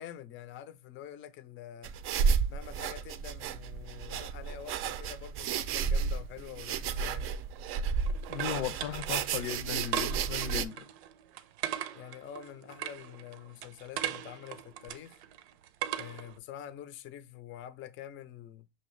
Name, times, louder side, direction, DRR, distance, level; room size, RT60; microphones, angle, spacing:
voice 1, 0.0-1.9 2.5-7.3 11.9-15.2 15.9-18.7, left 10 dB, 40° left, 0.5 m, -46 dB
sound 1, 1.8-10.7, right 6 dB, 40° right, 0.4 m, -32 dB
sound 2, 7.4-16.4, right 11 dB, 85° right, 0.6 m, -40 dB
voice 2, 8.3-10.9, left 9 dB, 75° left, 0.7 m, -36 dB
5.6 x 2.7 x 3.1 m
supercardioid pair, 115°, 32 cm